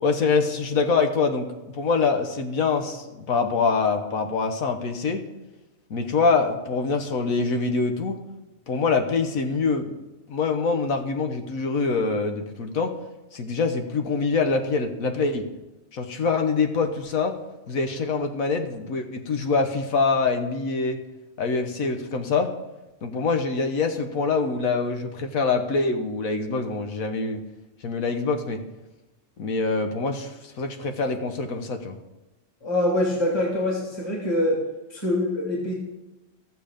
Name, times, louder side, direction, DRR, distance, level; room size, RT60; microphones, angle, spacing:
voice 1, 0.0-5.2 5.9-8.2 8.7-10.0 10.3-13.0 13.3-15.5 15.9-17.3 17.7-21.0 21.4-22.5 23.0-27.4 27.8-28.6 29.4-31.9, left 4 dB, 85° left, 6 dB, 1.5 m, -25 dB
voice 2, 32.6-34.6 34.9-35.7, left 1 dB, 20° left, -1 dB, 2.2 m, -24 dB
15.0 x 7.0 x 5.1 m, 1.0 s
omnidirectional pair, 1.4 m